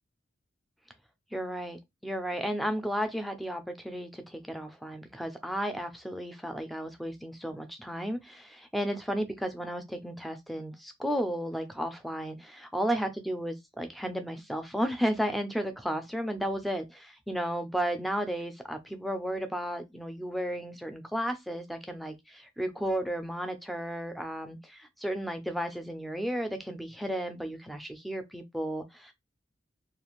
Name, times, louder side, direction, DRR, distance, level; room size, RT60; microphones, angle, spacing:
voice 1, 1.3-29.1, equal, ahead, 0.3 m, -33 dB
2.4 x 2.4 x 2.9 m
head